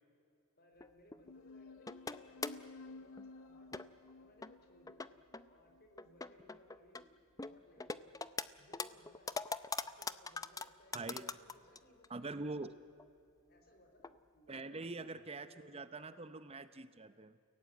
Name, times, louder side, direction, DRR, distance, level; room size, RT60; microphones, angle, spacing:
voice 1, 0.6-5.0 5.5-7.1 7.4-8.2 8.6-9.4 9.8-12.5 13.5-16.0, left 1 dB, 50° left, 5 dB, 4.0 m, -64 dB
sound 1, 0.8-1.3 1.9-2.7 3.2-3.3 3.7-4.1 4.4-4.5 4.9-5.5 6.0-7.0 7.4-8.5 8.7-11.8 12.0-12.1 12.6-12.7 13.0-13.1 14.0-14.2 14.6-14.7, left 4 dB, 15° left, 0.6 m, -42 dB
sound 2, 1.2-6.2, left 3 dB, 85° left, 0.5 m, -55 dB
voice 2, 10.9-11.3 12.1-12.7 14.5-17.3, right 3 dB, 30° right, 12 dB, 0.7 m, -44 dB
30.0 x 17.5 x 9.3 m, 2.6 s
head